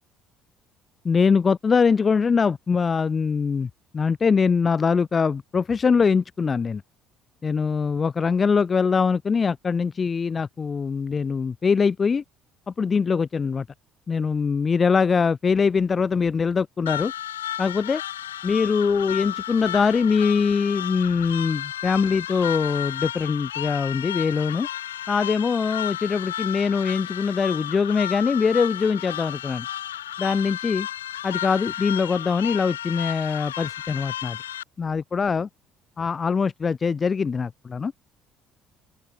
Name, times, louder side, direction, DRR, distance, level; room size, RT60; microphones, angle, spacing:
voice 1, 1.0-6.8 7.4-12.2 12.7-13.6 14.1-17.1 17.6-18.0 18.4-24.7 25.1-29.7 30.2-30.9 31.2-34.4 34.8-35.5 36.0-37.9, left 5 dB, 30° left, 1.9 m, -23 dB
sound 1, 16.9-34.6, left 11 dB, 75° left, 2.4 m, -33 dB
open air
figure-of-eight pair, 55°, 0 cm